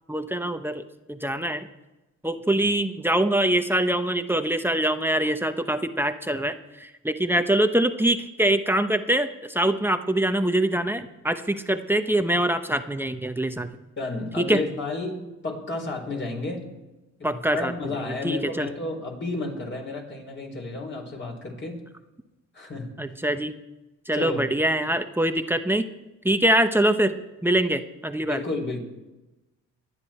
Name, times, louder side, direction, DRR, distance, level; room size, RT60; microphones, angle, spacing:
voice 1, 0.1-0.8 1.1-1.7 2.2-13.7 14.4-14.6 17.2-17.7 18.2-18.7 23.0-23.5 24.1-25.9 26.2-27.1 27.4-28.4, right 1 dB, 5° right, 8 dB, 0.9 m, -24 dB
voice 2, 14.0-16.7 17.2-21.8 22.5-22.9 24.1-24.5 28.2-28.8, left 3 dB, 40° left, 2 dB, 4.3 m, -31 dB
24.0 x 9.8 x 4.4 m, 1.1 s
cardioid pair, 90°, 30 cm